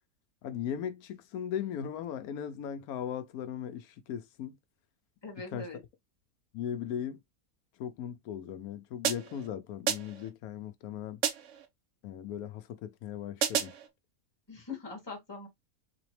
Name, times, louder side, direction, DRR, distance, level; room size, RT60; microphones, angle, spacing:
voice 1, 0.4-4.6 5.5-5.7 6.5-7.2 7.8-11.2 12.0-13.7, left 9 dB, 85° left, 1.1 m, -38 dB
voice 2, 5.2-5.8 14.5-15.5, left 3 dB, 20° left, 1.4 m, -42 dB
sound 1, 9.0-9.5 9.9-10.3 11.2-11.7 13.4-13.9, right 8 dB, 65° right, 1.0 m, -31 dB
4.2 x 2.9 x 3.1 m
omnidirectional pair, 1.5 m